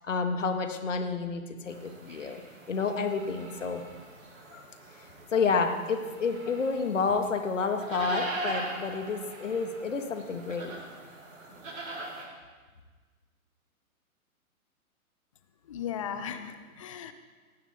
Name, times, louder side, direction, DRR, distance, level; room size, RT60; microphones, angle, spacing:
voice 1, 0.0-2.4 2.7-3.8 4.5-4.6 5.3-10.7, left 4 dB, 55° left, 6 dB, 2.0 m, -30 dB
sound 1, 1.7-12.2, right 2 dB, 60° right, 5.4 m, -41 dB
voice 2, 15.7-17.1, left 8 dB, 25° left, 10 dB, 0.6 m, -36 dB
18.5 x 15.5 x 4.2 m, 1.4 s
figure-of-eight pair, 125°, 43 cm